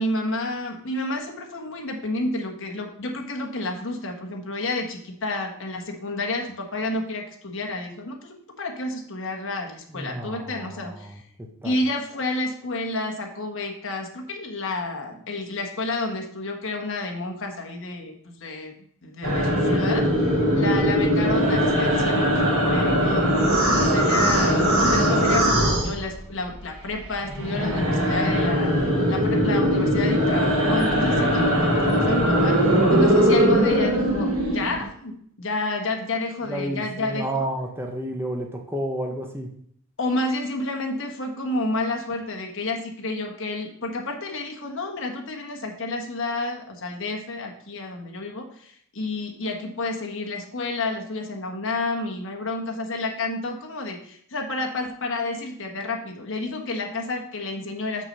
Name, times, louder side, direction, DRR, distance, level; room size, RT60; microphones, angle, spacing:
voice 1, 0.0-11.2 11.6-18.7 19.0-28.7 29.1-37.5 40.0-58.0, left 2 dB, 55° left, 2 dB, 1.4 m, -30 dB
voice 2, 9.9-11.2 11.6-11.8 23.6-24.2 36.5-39.5, right 1 dB, 10° right, 2 dB, 0.8 m, -31 dB
sound 1, 19.2-26.6 26.8-34.8, equal, 85° right, 2.2 m, -21 dB
6.5 x 6.1 x 5.4 m, 0.65 s
head